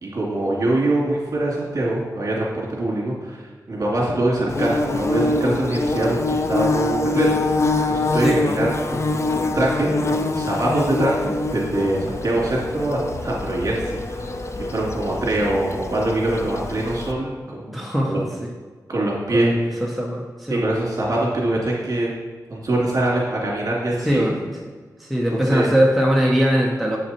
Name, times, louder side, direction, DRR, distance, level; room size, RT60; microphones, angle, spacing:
voice 1, 0.0-7.6 7.9-14.2 14.7-17.8 18.0-18.2 18.9-19.8 20.5-22.1 22.5-24.3 25.3-25.7, right 1 dB, 50° right, -4 dB, 2.6 m, -23 dB
Bird / Buzz, 4.5-17.1, left 2 dB, 45° left, 0.5 m, -24 dB
voice 2, 17.7-18.5 19.3-20.6 24.0-24.6 25.0-27.0, equal, ahead, -1 dB, 0.8 m, -21 dB
8.1 x 5.9 x 4.3 m, 1.4 s
wide cardioid pair, 115°, 7 cm